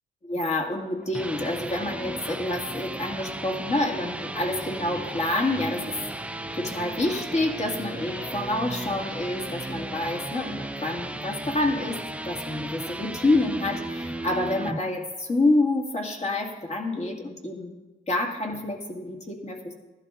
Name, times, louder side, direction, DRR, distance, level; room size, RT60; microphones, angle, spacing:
voice 1, 0.2-5.9 6.5-12.0 12.3-17.7 18.1-19.7, left 2 dB, 35° left, 1 dB, 2.1 m, -27 dB
sound 1, 0.9-14.8, right 1 dB, 5° right, 0.6 m, -35 dB
sound 2, 4.2-11.2, left 2 dB, 85° left, 3.1 m, -48 dB
14.5 x 11.0 x 3.8 m, 1.2 s
cardioid pair, 90°, 20 cm